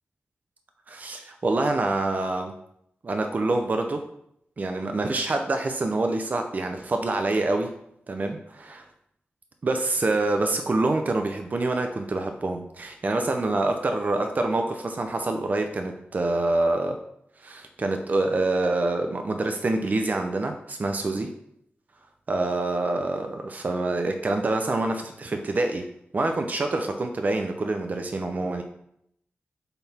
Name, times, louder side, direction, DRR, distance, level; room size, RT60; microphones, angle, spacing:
voice 1, 0.9-2.5 3.0-4.0 4.6-7.7 8.1-8.9 9.6-17.0 17.4-21.3 22.3-25.9 26.1-28.6, right 2 dB, 45° right, 5 dB, 0.6 m, -26 dB
6.8 x 4.0 x 4.2 m, 0.75 s
wide cardioid pair, 95°, 4 cm